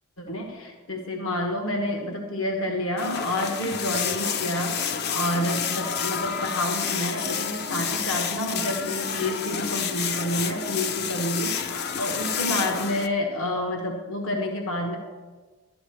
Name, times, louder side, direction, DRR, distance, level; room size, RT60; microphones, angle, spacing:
voice 1, 0.2-15.0, left 1 dB, 70° left, 2 dB, 1.4 m, -29 dB
sound 1, 3.0-13.1, left 7 dB, 50° left, 0.5 m, -29 dB
12.0 x 10.5 x 4.7 m, 1.3 s
head